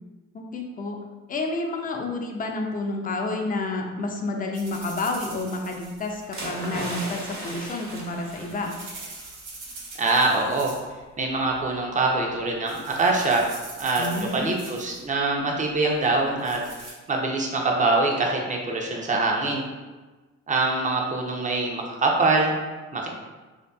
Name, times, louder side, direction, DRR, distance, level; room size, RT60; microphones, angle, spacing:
voice 1, 0.3-1.0 1.3-8.7 14.0-14.5, left 2 dB, 30° left, 2 dB, 0.4 m, -29 dB
sound 1, 4.5-6.5 8.0-11.0 11.3-11.7 12.2-12.4 12.7-15.0 16.0-16.9, right 3 dB, 80° right, 0.8 m, -43 dB
sound 2, 6.3-9.4 9.7-9.9, right 1 dB, 45° right, 0.9 m, -36 dB
voice 2, 10.0-10.7 11.2-13.5 13.8-16.6 17.1-19.6 20.5-22.5 22.9-23.1, right 3 dB, 25° right, 0 dB, 0.5 m, -24 dB
2.6 x 2.6 x 2.3 m, 1.3 s
cardioid pair, 90°, 30 cm